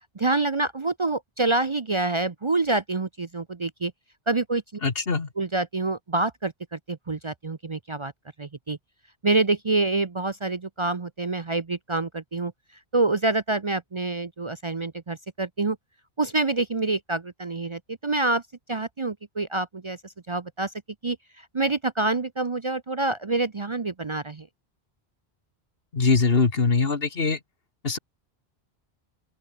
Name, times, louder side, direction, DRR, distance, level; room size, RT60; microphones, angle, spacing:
voice 1, 0.2-3.9 4.3-4.6 5.4-8.1 8.4-8.8 9.2-12.5 12.9-15.8 16.2-18.4 18.7-20.0 20.3-20.7 21.0-21.2 21.5-24.5, right 3 dB, 30° right, 0.7 m, -26 dB
voice 2, 4.8-5.3 25.9-27.4 27.8-28.0, left 4 dB, 65° left, 2.0 m, -22 dB
open air
omnidirectional pair, 1.1 m